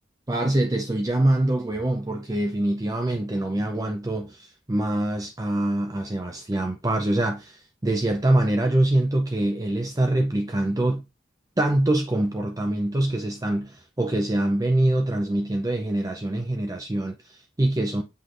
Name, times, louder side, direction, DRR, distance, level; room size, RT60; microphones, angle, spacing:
voice 1, 0.3-11.0 11.6-18.0, right 1 dB, 20° right, 0.5 m, -24 dB
7.8 x 3.3 x 3.8 m
head